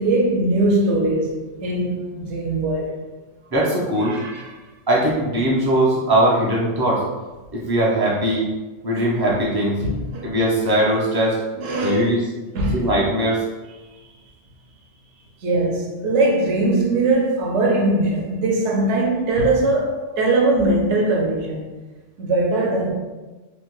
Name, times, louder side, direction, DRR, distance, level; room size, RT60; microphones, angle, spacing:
voice 1, 0.0-2.9 4.0-4.5 9.8-10.3 11.6-12.1 12.5-12.9 15.4-21.7 22.2-22.9, right 2 dB, 70° right, 0.8 m, -21 dB
voice 2, 3.5-4.2 4.9-7.0 7.5-8.5 8.8-9.8 10.2-11.4 11.8-12.2 12.7-13.4, right 1 dB, 40° right, 0.3 m, -20 dB
2.8 x 2.1 x 3.0 m
omnidirectional pair, 1.3 m